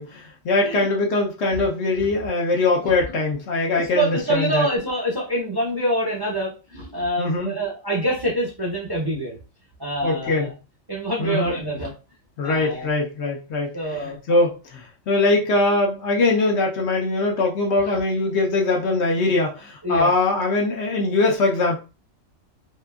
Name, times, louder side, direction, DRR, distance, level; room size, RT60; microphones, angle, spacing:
voice 1, 0.0-4.7 7.2-7.5 10.0-10.5 11.2-11.6 12.4-21.8, left 2 dB, 65° left, 0 dB, 0.8 m, -22 dB
voice 2, 3.7-9.4 9.8-10.5 10.9-11.9 12.4-12.9 13.7-14.2 17.8-17.9 19.8-20.1, right 1 dB, 25° right, -4 dB, 0.5 m, -26 dB
2.8 x 2.4 x 2.2 m, 0.32 s
omnidirectional pair, 1.4 m